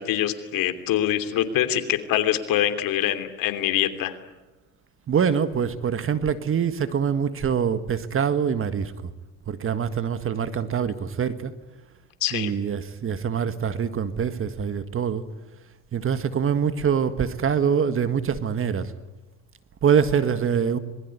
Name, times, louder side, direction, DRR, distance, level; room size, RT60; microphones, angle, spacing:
voice 1, 0.0-4.2 12.2-12.6, left 12 dB, 60° left, 3.1 m, -24 dB
voice 2, 5.1-9.1 9.5-11.5 12.3-15.2 15.9-18.9 19.8-20.8, right 7 dB, 35° right, 1.8 m, -24 dB
26.0 x 21.5 x 9.6 m
supercardioid pair, 105°, 38 cm